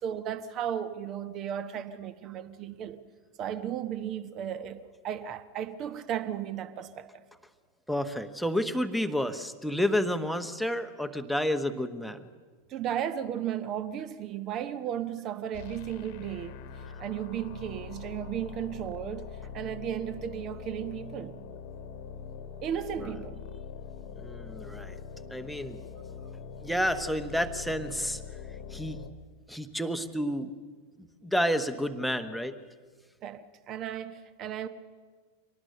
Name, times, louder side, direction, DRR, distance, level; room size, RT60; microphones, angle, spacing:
voice 1, 0.0-3.0 3.4-7.2 12.7-21.4 22.6-23.4 33.2-34.7, right 9 dB, 35° right, 1.1 m, -35 dB
voice 2, 7.9-12.3 23.0-23.1 24.2-25.0 25.3-25.8 26.6-28.2 28.7-29.0 29.5-30.5 31.2-32.6, equal, ahead, 1.1 m, -30 dB
sound 1, 15.5-29.1, left 6 dB, 45° left, 1.3 m, -43 dB
24.5 x 18.5 x 6.7 m
figure-of-eight pair, 90°, 0 cm